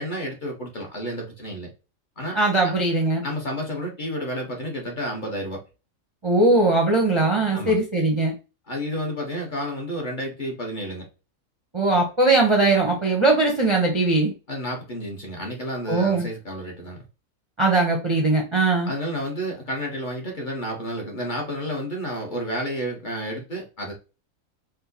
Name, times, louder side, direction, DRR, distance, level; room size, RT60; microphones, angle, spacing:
voice 1, 0.0-1.7 2.2-2.4 2.6-2.7 3.2-5.6 7.5-7.8 8.7-11.1 14.5-17.0 18.8-23.9, equal, 40° left, 0.9 m, -31 dB
voice 2, 2.3-3.2 6.2-8.3 11.7-14.3 15.9-16.2 17.6-18.9, right 2 dB, 30° right, 0.5 m, -20 dB
4.5 x 2.1 x 2.6 m
omnidirectional pair, 1.4 m